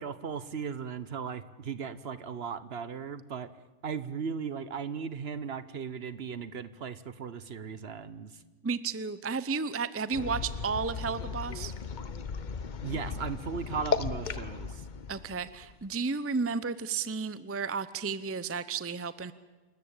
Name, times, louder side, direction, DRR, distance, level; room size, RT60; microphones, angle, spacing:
voice 1, 0.0-3.5 3.8-8.3 12.8-14.8, right 6 dB, 55° right, 15 dB, 1.1 m, -37 dB
voice 2, 8.6-11.7 15.1-19.3, right 5 dB, 15° right, 15 dB, 0.6 m, -33 dB
sound 1, 10.1-15.9, left 5 dB, 45° left, 0.9 m, -36 dB
27.0 x 14.0 x 8.8 m, 1.2 s
omnidirectional pair, 1.3 m